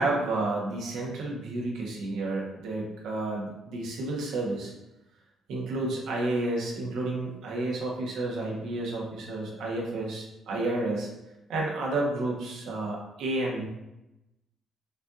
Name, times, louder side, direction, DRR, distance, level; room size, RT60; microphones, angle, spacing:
voice 1, 0.0-4.7 5.5-11.1 11.5-13.7, right 2 dB, 85° right, -2 dB, 1.1 m, -31 dB
6.5 x 2.7 x 2.5 m, 0.92 s
cardioid pair, 90°, 0 cm